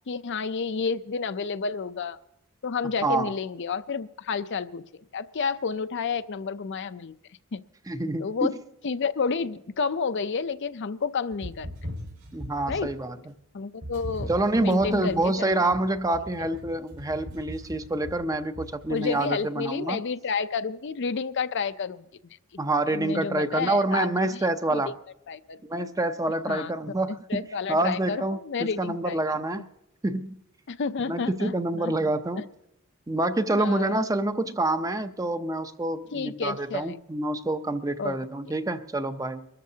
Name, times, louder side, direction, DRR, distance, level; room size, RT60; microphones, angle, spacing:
voice 1, 0.1-2.2 2.6-7.1 7.5-7.6 8.2-8.5 8.8-11.7 12.7-12.9 13.5-14.3 14.6-15.5 18.9-22.0 22.9-24.1 24.3-24.4 24.7-24.8 25.3-25.6 26.5-26.7 27.3-29.5 30.7-32.1 32.4-32.5 33.5-34.0 36.1-36.9 38.0-38.2, left 5 dB, 55° left, 12 dB, 0.5 m, -30 dB
voice 2, 3.0-3.3 7.9-8.5 12.3-13.2 14.3-20.0 22.6-25.0 25.6-27.4 27.7-29.7 30.0-30.4 31.1-32.5 33.1-39.5, right 2 dB, 15° right, 10 dB, 0.6 m, -27 dB
sound 1, 11.3-13.1 13.8-19.2, equal, 70° right, 5.1 m, -40 dB
24.0 x 13.5 x 2.8 m, 0.82 s
head